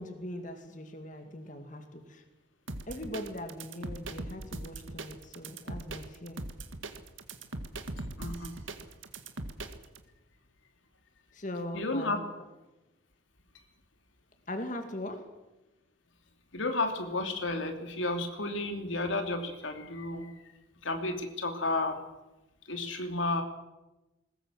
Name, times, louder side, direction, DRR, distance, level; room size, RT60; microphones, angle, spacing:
voice 1, 0.0-2.2 2.9-6.4 11.3-12.2 14.5-15.2, left 1 dB, 40° left, 5 dB, 2.3 m, -40 dB
sound 1, 2.7-10.0, right 2 dB, 85° right, 2.0 m, -40 dB
voice 2, 8.2-8.5 11.7-12.2 16.5-20.3 20.8-22.0 22.7-23.4, left 2 dB, 80° left, 5 dB, 3.0 m, -32 dB
21.5 x 19.5 x 7.6 m, 1.0 s
head